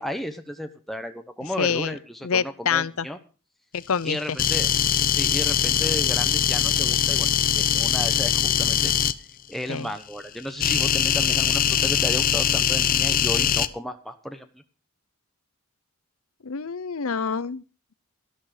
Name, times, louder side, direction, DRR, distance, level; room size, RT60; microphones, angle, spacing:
voice 1, 0.0-3.2 4.0-4.7 5.0-9.0 9.5-14.5, equal, ahead, 0.9 m, -34 dB
voice 2, 1.6-1.9 2.2-3.1 3.7-4.4 9.7-9.9 16.4-17.6, left 6 dB, 75° left, 0.7 m, -26 dB
sound 1, 4.4-9.1 10.6-13.7, left 8 dB, 40° left, 0.6 m, -22 dB
13.5 x 12.0 x 4.9 m
head